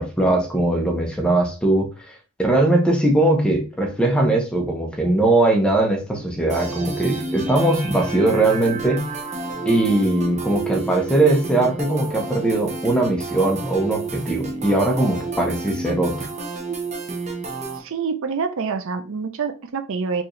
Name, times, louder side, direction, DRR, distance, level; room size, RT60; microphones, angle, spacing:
voice 1, 0.0-9.1 9.7-16.3, right 2 dB, 5° left, 2 dB, 0.9 m, -20 dB
sound 1, 6.5-17.8, right 3 dB, 30° right, 0.8 m, -30 dB
voice 2, 17.8-20.2, right 5 dB, 65° right, 8 dB, 0.5 m, -26 dB
4.7 x 2.7 x 3.1 m, 0.37 s
head